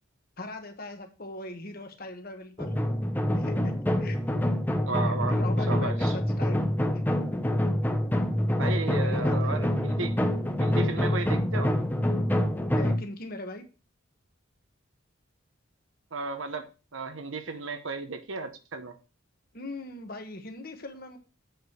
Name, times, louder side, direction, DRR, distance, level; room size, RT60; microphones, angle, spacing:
voice 1, 0.4-2.8 3.3-3.7 4.0-4.2 5.1-6.6 6.9-7.0 9.0-9.6 12.7-13.6 19.5-21.2, left 2 dB, 45° left, 1.5 m, -40 dB
sound 1, 2.6-13.0, left 1 dB, 10° left, 0.8 m, -26 dB
voice 2, 4.9-5.4 5.7-6.2 8.6-10.2 10.6-11.7 16.1-19.0, right 3 dB, 70° right, 1.0 m, -34 dB
8.0 x 4.9 x 6.3 m
head